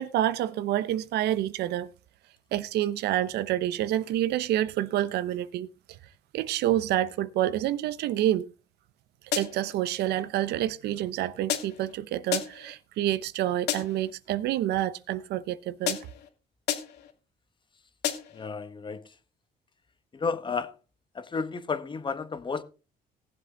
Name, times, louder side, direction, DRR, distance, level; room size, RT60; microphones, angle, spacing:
voice 1, 0.0-1.9 2.5-5.7 6.3-8.5 9.4-16.0, right 13 dB, 80° right, 0.9 m, -28 dB
sound 1, 9.3-9.7 11.5-11.9 12.3-12.7 13.7-14.1 15.9-16.3 16.7-17.1 18.0-18.5, left 10 dB, 80° left, 2.7 m, -32 dB
voice 2, 18.3-19.1 20.1-20.7 21.1-22.6, left 5 dB, 30° left, 1.6 m, -32 dB
18.5 x 7.8 x 3.9 m
cardioid pair, 110°, 17 cm